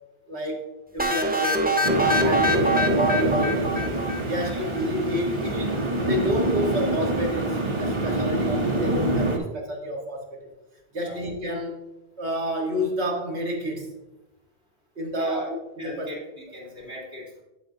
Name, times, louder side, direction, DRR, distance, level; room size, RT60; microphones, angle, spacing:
voice 1, 0.3-3.9 4.3-5.8 6.1-10.4 10.9-11.8 12.2-13.9 15.0-16.1, equal, 85° right, -1 dB, 1.9 m, -29 dB
sound 1, 1.0-4.8, equal, 15° right, 0.4 m, -24 dB
sound 2, 1.8-9.4, right 2 dB, 30° right, 0.8 m, -26 dB
voice 2, 15.8-17.4, left 1 dB, 50° right, -5 dB, 2.9 m, -38 dB
8.8 x 7.1 x 2.7 m, 0.97 s
omnidirectional pair, 1.1 m